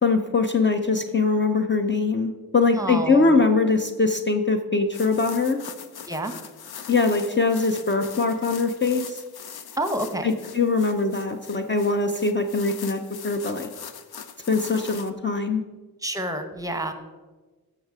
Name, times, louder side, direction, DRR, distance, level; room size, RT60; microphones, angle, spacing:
voice 1, 0.0-5.6 6.9-9.2 10.2-13.7 14.5-15.6, left 4 dB, 30° left, 5 dB, 0.7 m, -22 dB
voice 2, 2.7-3.3 6.1-6.3 9.8-10.3 16.0-16.9, right 1 dB, 10° right, 7 dB, 1.0 m, -28 dB
sound 1, 4.9-15.1, left 7 dB, 85° left, 0.8 m, -41 dB
14.0 x 5.7 x 4.8 m, 1.3 s
wide cardioid pair, 105°, 37 cm